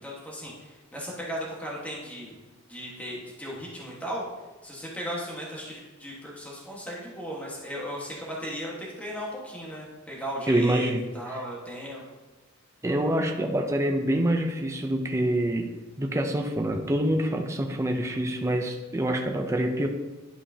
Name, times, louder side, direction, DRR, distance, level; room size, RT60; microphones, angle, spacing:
voice 1, 0.0-2.4 2.7-4.2 4.6-12.0, equal, 5° left, -5 dB, 1.4 m, -36 dB
voice 2, 10.5-11.4 12.8-15.7 16.0-19.9, right 1 dB, 15° right, 3 dB, 0.5 m, -26 dB
11.0 x 5.1 x 2.8 m, 1.2 s
head